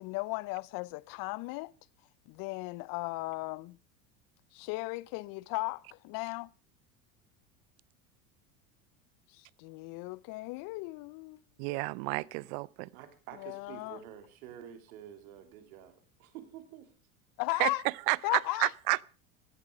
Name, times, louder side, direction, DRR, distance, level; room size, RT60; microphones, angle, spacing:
voice 1, 0.0-1.7 2.3-3.8 4.5-6.5 9.3-11.4 13.4-14.0 17.4-17.8 18.2-18.7, left 23 dB, 50° left, 0.7 m, -36 dB
voice 2, 11.6-12.9 17.6-17.7 18.1-19.0, right 27 dB, 60° right, 0.6 m, -30 dB
voice 3, 12.9-16.9, right 10 dB, 75° right, 2.9 m, -49 dB
16.0 x 11.0 x 4.9 m
hypercardioid pair, 90°, 43 cm